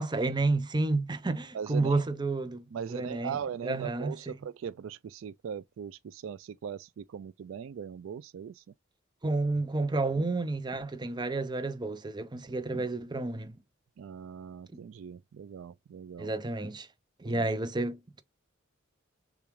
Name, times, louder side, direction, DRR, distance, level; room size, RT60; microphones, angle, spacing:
voice 1, 0.0-3.4 3.6-4.3 9.2-13.6 16.2-16.9 17.2-18.2, right 2 dB, 20° right, 0.6 m, -30 dB
voice 2, 1.5-2.0 2.7-8.6 14.0-16.3 17.3-17.5, right 7 dB, 70° right, 0.3 m, -40 dB
6.8 x 2.4 x 3.1 m
head